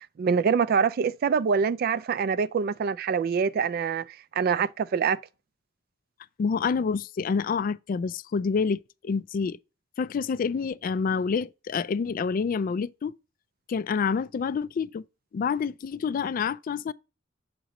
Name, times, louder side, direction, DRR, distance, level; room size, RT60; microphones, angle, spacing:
voice 1, 0.2-4.0 4.4-5.2, right 6 dB, 50° right, 0.3 m, -25 dB
voice 2, 6.4-9.6 10.0-13.1 13.7-15.0 15.3-16.9, left 5 dB, 45° left, 0.3 m, -28 dB
7.4 x 2.9 x 5.0 m
head